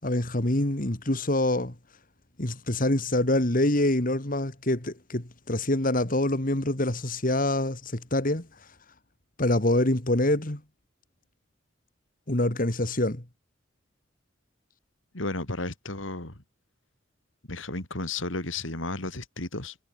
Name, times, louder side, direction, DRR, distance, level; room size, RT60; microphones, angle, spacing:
voice 1, 0.0-1.7 2.4-8.5 9.4-10.6 12.3-13.2, left 1 dB, 45° left, 2.6 m, -25 dB
voice 2, 15.1-16.4 17.5-19.8, left 2 dB, 80° left, 3.9 m, -33 dB
head